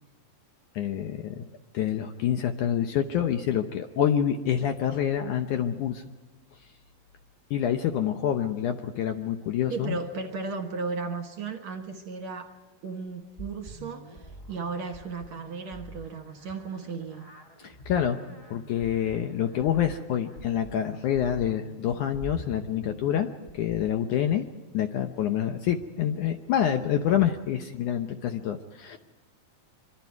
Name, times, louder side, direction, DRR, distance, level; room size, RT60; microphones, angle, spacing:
voice 1, 0.8-1.5 1.7-6.0 7.5-10.0 17.6-18.2 18.5-23.3 23.5-24.5 24.7-29.0, left 9 dB, 70° left, 6 dB, 2.0 m, -27 dB
voice 2, 9.7-12.5 12.8-17.3, right 4 dB, 55° right, 5 dB, 2.4 m, -35 dB
sound 1, 13.4-23.9, right 1 dB, 25° left, 0.8 m, -46 dB
25.5 x 24.0 x 4.7 m, 1.3 s
omnidirectional pair, 4.3 m